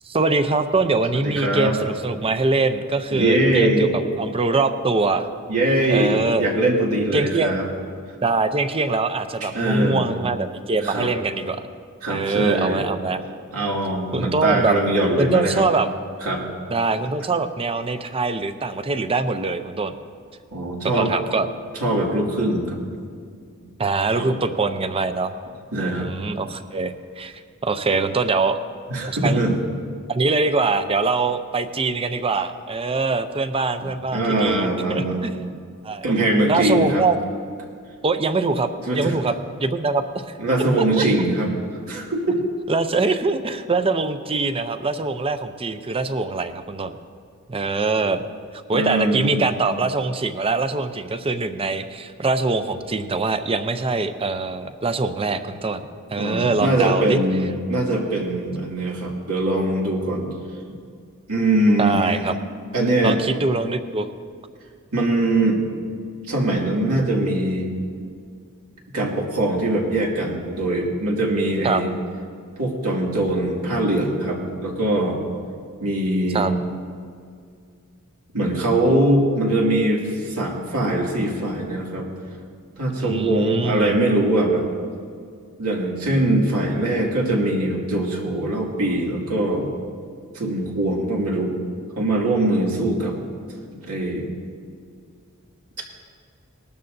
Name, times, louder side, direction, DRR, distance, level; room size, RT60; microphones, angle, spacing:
voice 1, 0.1-5.3 5.9-6.5 7.1-7.5 8.2-11.6 12.1-13.2 14.1-14.7 15.2-15.9 16.7-19.9 20.8-21.5 23.8-25.3 25.8-27.3 27.6-28.6 29.1-29.4 30.1-35.4 35.8-36.0 36.5-37.2 38.0-39.3 39.6-40.2 41.0-41.1 42.3-42.4 42.7-46.9 47.5-48.2 48.7-57.2 61.8-62.4 63.0-64.1 71.6-71.8 76.3-76.5 83.0-83.9, right 3 dB, 25° right, 10 dB, 0.6 m, -23 dB
voice 2, 1.2-1.7 3.1-3.9 5.5-7.7 9.4-10.0 10.8-11.1 12.0-12.8 13.5-15.6 16.2-16.4 20.5-21.1 21.8-22.8 24.2-24.4 25.7-26.1 28.9-29.5 33.8-35.4 36.0-37.0 38.8-39.2 40.4-41.5 41.9-42.4 48.7-49.4 56.2-60.3 61.3-62.2 62.7-63.2 64.9-65.6 66.3-67.7 68.9-71.9 72.6-75.2 75.8-76.6 78.3-82.1 82.8-84.7 85.6-89.7 90.3-91.5 92.0-93.2 93.7-94.3, right 1 dB, 90° right, -2 dB, 2.4 m, -22 dB
20.0 x 12.5 x 2.7 m, 2.2 s
head